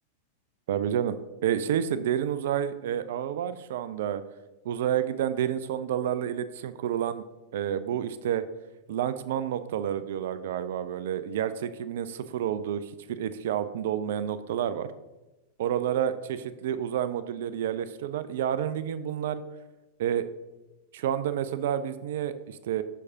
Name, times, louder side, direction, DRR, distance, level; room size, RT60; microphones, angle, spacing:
voice 1, 0.7-1.1 1.4-4.2 4.6-7.2 7.5-8.4 8.9-14.9 15.6-19.4 20.0-20.3 20.9-22.8, right 10 dB, 55° right, 13 dB, 0.3 m, -29 dB
6.4 x 6.2 x 2.7 m, 1.0 s
figure-of-eight pair, 90°, 0 cm